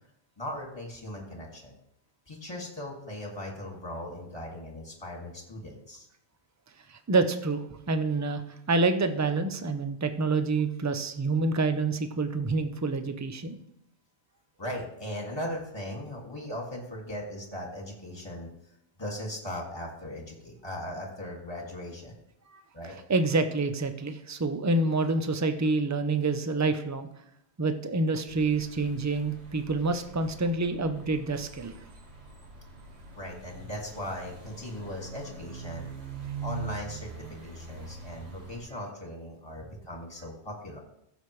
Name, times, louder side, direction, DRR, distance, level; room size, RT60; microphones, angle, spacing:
voice 1, 0.4-1.8 2.3-6.1 14.6-18.5 19.0-22.2 22.7-23.0 33.1-35.9 36.4-40.8, left 1 dB, 25° left, 0 dB, 2.2 m, -38 dB
voice 2, 6.9-13.6 22.5-27.1 27.6-31.8, right 3 dB, 20° right, 8 dB, 0.6 m, -27 dB
sound 1, 28.3-38.6, right 4 dB, 75° right, 2.1 m, -43 dB
15.0 x 7.2 x 3.2 m, 0.77 s
omnidirectional pair, 1.1 m